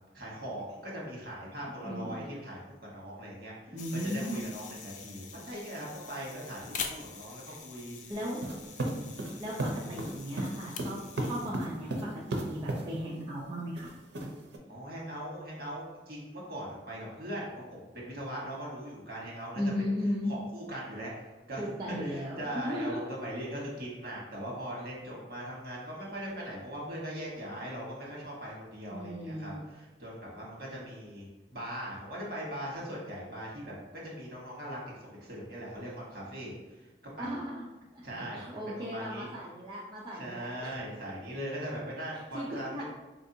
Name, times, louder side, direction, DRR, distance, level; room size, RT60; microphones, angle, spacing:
voice 1, 0.1-3.5 3.9-8.0 9.5-9.8 14.7-19.6 20.3-21.1 21.5-31.2 31.5-36.5 37.2-37.3 38.0-39.3 40.1-42.8, right 1 dB, 55° right, -4 dB, 1.2 m, -40 dB
voice 2, 1.8-2.2 3.7-4.4 7.5-7.6 8.1-8.4 9.4-13.9 14.2-14.3 19.5-20.3 21.6-23.1 28.9-29.6 37.2-37.7 37.9-38.0 38.3-40.8 42.3-42.8, equal, 25° right, -6 dB, 0.5 m, -36 dB
sound 1, 3.8-11.5, left 6 dB, 45° left, 0.3 m, -44 dB
sound 2, 8.4-12.9 13.8-14.6, right 1 dB, 80° right, 0.6 m, -34 dB
4.2 x 2.6 x 2.7 m, 1.2 s
head